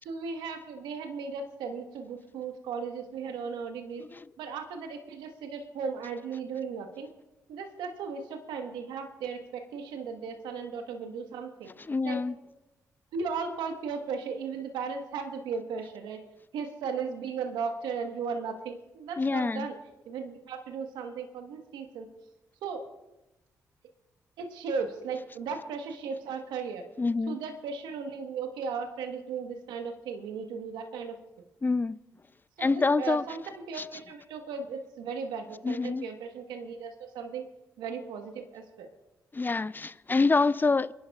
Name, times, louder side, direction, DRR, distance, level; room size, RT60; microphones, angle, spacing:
voice 1, 0.0-4.0 4.4-7.1 7.5-11.7 12.0-12.2 13.1-16.2 16.5-19.8 20.1-22.1 22.6-22.8 24.4-26.9 27.3-31.2 32.6-37.4 37.8-38.9, right 5 dB, 75° right, 1.2 m, -36 dB
voice 2, 11.9-12.3 19.2-19.7 27.0-27.4 31.6-32.0 32.6-33.2 33.8-33.9 35.6-36.0 39.3-40.9, left 3 dB, 25° left, 0.5 m, -26 dB
26.5 x 11.0 x 2.4 m
hypercardioid pair, 45°, 8 cm